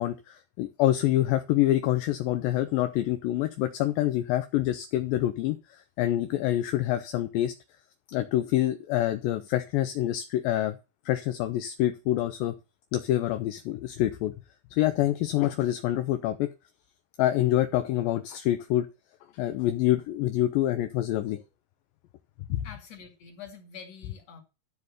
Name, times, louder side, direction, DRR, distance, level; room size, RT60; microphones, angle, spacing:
voice 1, 0.0-7.5 8.1-10.8 11.1-12.6 12.9-14.3 14.7-16.5 17.2-18.9 19.3-21.4 22.5-22.7, left 14 dB, 80° left, 2.2 m, -26 dB
voice 2, 22.6-24.4, left 7 dB, 45° left, 3.2 m, -45 dB
12.0 x 4.1 x 6.6 m
omnidirectional pair, 4.5 m